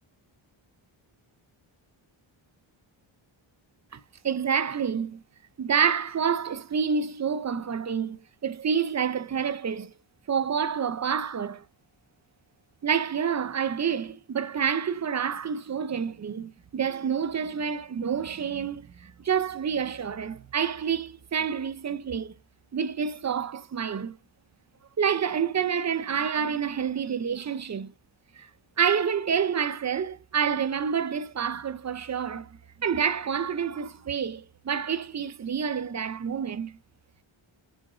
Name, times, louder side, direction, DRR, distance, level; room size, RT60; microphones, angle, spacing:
voice 1, 4.2-5.2 5.6-9.9 10.3-11.6 12.8-22.3 22.7-24.2 25.0-27.9 28.4-28.5 28.8-32.5 32.8-36.8, right 7 dB, 35° right, 0.5 m, -28 dB
6.2 x 4.8 x 4.7 m
wide cardioid pair, 175°, 49 cm